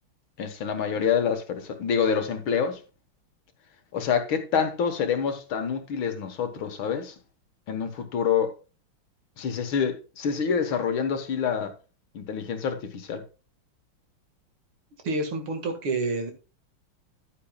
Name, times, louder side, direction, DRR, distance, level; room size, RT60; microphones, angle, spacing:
voice 1, 0.4-2.8 3.9-7.1 7.7-8.5 9.4-11.7 12.1-13.2, left 7 dB, 70° left, 2.0 m, -27 dB
voice 2, 15.0-16.3, right 3 dB, 75° right, 2.7 m, -28 dB
11.0 x 8.8 x 2.3 m
omnidirectional pair, 2.3 m